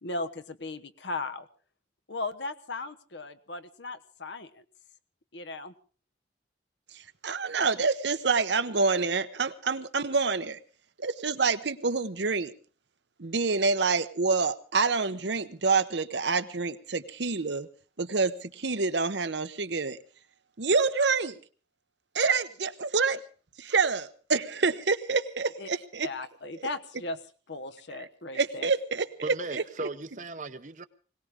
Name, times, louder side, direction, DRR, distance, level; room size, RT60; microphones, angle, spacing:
voice 1, 0.0-1.5 2.1-4.6 5.3-5.7 25.6-25.7 26.0-27.2 27.5-28.7, left 2 dB, 75° left, 1.1 m, -37 dB
voice 2, 6.9-10.6 11.0-12.5 13.2-17.7 18.0-20.0 20.6-21.4 22.1-23.2 23.6-26.1 28.3-29.6, right 4 dB, 70° right, 1.0 m, -27 dB
voice 3, 29.2-30.9, right 3 dB, 40° right, 0.8 m, -37 dB
21.5 x 18.5 x 3.7 m
head